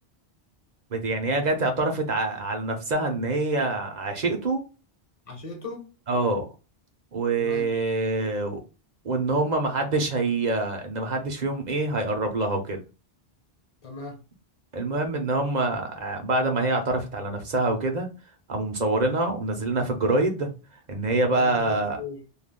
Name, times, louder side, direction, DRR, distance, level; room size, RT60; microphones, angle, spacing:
voice 1, 0.9-4.6 6.1-6.4 7.1-8.6 9.0-12.8 14.7-18.1 18.5-20.5 20.9-22.0, right 2 dB, 50° right, 0.7 m, -25 dB
voice 2, 5.3-5.9 7.4-7.7 13.8-14.2 21.3-22.2, left 4 dB, 35° left, 1.0 m, -38 dB
2.4 x 2.3 x 3.5 m
omnidirectional pair, 1.1 m